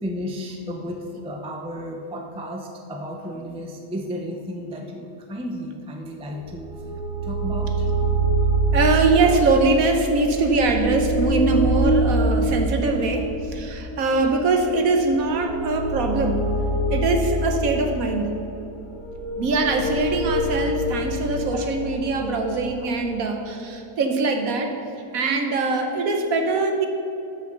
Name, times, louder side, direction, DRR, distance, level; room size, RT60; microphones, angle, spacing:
voice 1, 0.0-6.7 7.2-7.9 21.5-21.7 22.3-22.4 22.8-22.9, equal, 10° right, 1 dB, 0.3 m, -33 dB
sound 1, 6.3-23.1, right 2 dB, 50° left, 1.8 m, -25 dB
voice 2, 8.7-16.5 16.9-18.3 19.3-24.7 25.1-26.9, right 3 dB, 60° right, 4 dB, 1.2 m, -22 dB
13.0 x 6.7 x 3.9 m, 3.0 s
omnidirectional pair, 1.7 m